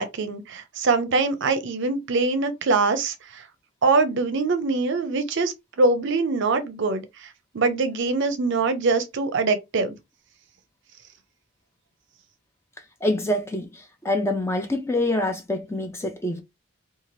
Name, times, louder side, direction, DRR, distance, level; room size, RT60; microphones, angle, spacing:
voice 1, 0.0-3.4 3.8-7.0 7.5-9.9, right 3 dB, 55° right, 0.5 m, -23 dB
voice 2, 13.0-16.4, left 1 dB, 10° left, 0.4 m, -26 dB
2.8 x 2.3 x 3.0 m
head